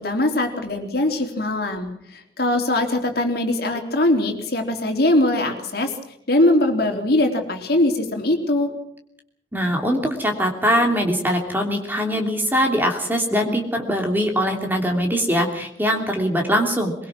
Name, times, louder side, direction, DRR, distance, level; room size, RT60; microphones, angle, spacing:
voice 1, 0.0-5.9 6.3-8.7, left 1 dB, 55° left, 4 dB, 3.6 m, -21 dB
voice 2, 9.5-16.9, equal, 10° right, 2 dB, 3.0 m, -22 dB
23.0 x 22.5 x 6.1 m, 0.73 s
head